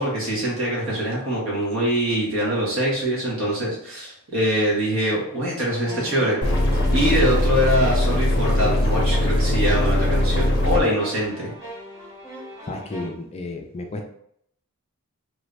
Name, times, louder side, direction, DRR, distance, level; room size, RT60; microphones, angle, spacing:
voice 1, 0.0-6.4 6.7-11.5, equal, 60° right, -4 dB, 1.3 m, -23 dB
sound 1, 5.9-13.1, left 1 dB, 15° right, 0.6 m, -37 dB
sound 2, 6.4-10.8, left 1 dB, 45° left, 0.7 m, -20 dB
voice 2, 12.7-14.0, left 2 dB, 30° left, 3 dB, 0.3 m, -33 dB
3.0 x 2.5 x 3.2 m, 0.71 s
head